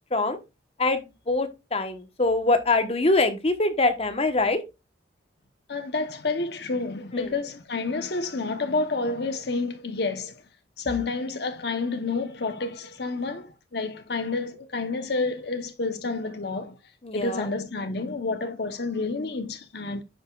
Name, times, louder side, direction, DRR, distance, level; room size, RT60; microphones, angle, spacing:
voice 1, 0.8-4.6 7.1-7.3 17.0-17.5, left 2 dB, 35° left, 1.1 m, -24 dB
voice 2, 5.7-10.3 10.8-16.7 17.1-20.0, left 3 dB, 60° left, 0.9 m, -29 dB
10.5 x 5.7 x 2.4 m
head